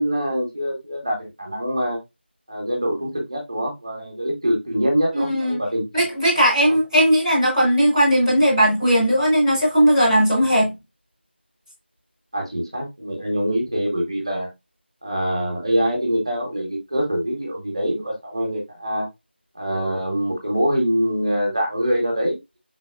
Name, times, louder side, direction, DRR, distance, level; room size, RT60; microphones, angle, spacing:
voice 1, 0.0-2.0 2.5-6.1 6.6-6.8 12.3-14.5 15.0-19.1 19.5-22.4, equal, 25° right, 1.3 m, -24 dB
voice 2, 5.1-5.6 5.9-10.7, equal, ahead, 0.8 m, -17 dB
4.9 x 4.0 x 2.3 m
figure-of-eight pair, 175°, 6 cm